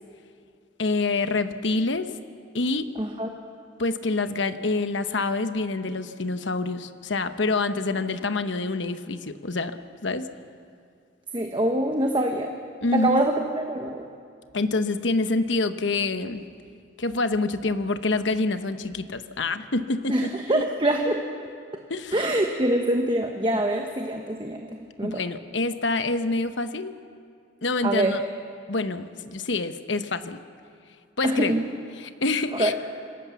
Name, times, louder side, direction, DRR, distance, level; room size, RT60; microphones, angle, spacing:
voice 1, 0.8-2.1 2.5-2.9 3.8-10.3 12.8-13.3 14.5-16.4 17.0-20.6 21.9-22.3 25.0-27.0 27.6-28.2 28.7-30.4 31.2-31.5 32.0-32.7, left 3 dB, 70° left, 10 dB, 1.0 m, -26 dB
voice 2, 3.0-3.3 11.3-12.5 12.9-13.4 13.7-14.1 20.1-21.2 22.1-25.2 27.8-28.2 31.2-31.7 32.5-32.7, right 1 dB, 25° right, 3 dB, 1.1 m, -24 dB
26.0 x 17.5 x 7.1 m, 2.3 s
head